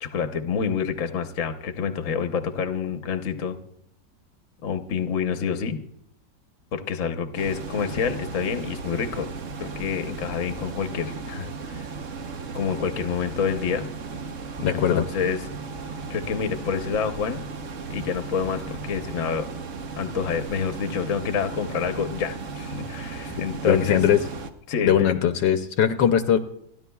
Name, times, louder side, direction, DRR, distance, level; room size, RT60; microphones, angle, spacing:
voice 1, 0.0-3.6 4.6-5.8 6.7-9.3 9.6-11.9 12.5-13.9 14.6-15.4 16.1-17.4 17.9-19.5 20.0-24.0 24.7-25.2, left 6 dB, 50° left, 7 dB, 1.2 m, -28 dB
sound 1, 7.4-24.5, right 4 dB, 50° right, 1.1 m, -36 dB
voice 2, 14.6-15.0 23.7-24.2 24.8-26.4, left 9 dB, 75° left, 8 dB, 1.3 m, -20 dB
29.0 x 11.0 x 2.3 m, 0.75 s
omnidirectional pair, 2.0 m